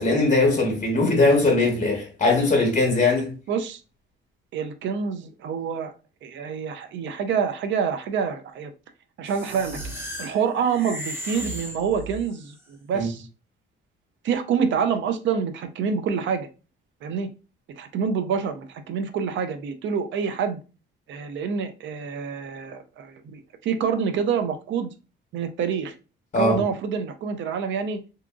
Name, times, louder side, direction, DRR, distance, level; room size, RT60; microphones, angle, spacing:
voice 1, 0.0-3.3 12.9-13.1 26.3-26.6, left 2 dB, 45° left, 1.0 m, -20 dB
voice 2, 3.5-3.8 4.5-5.9 6.2-8.7 9.2-9.8 10.2-13.3 14.2-16.5 17.0-17.3 17.8-20.6 21.1-24.9 25.3-25.9 26.4-28.0, right 6 dB, 70° right, 0.5 m, -27 dB
sound 1, 9.3-12.5, equal, 10° right, 0.9 m, -36 dB
2.7 x 2.5 x 2.3 m
cardioid pair, 90°, 20 cm